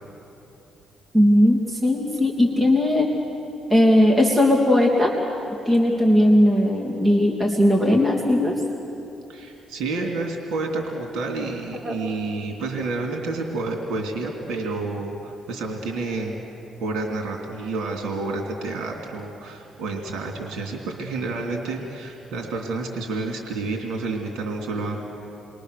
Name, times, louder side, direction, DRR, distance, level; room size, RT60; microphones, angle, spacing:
voice 1, 1.1-3.1 3.7-5.1 5.6-8.6 11.8-12.0, left 1 dB, 15° right, -1 dB, 2.8 m, -18 dB
voice 2, 9.3-16.4 16.8-25.2, right 3 dB, 80° right, 1 dB, 3.0 m, -29 dB
29.0 x 22.5 x 6.8 m, 2.9 s
cardioid pair, 90°, 0 cm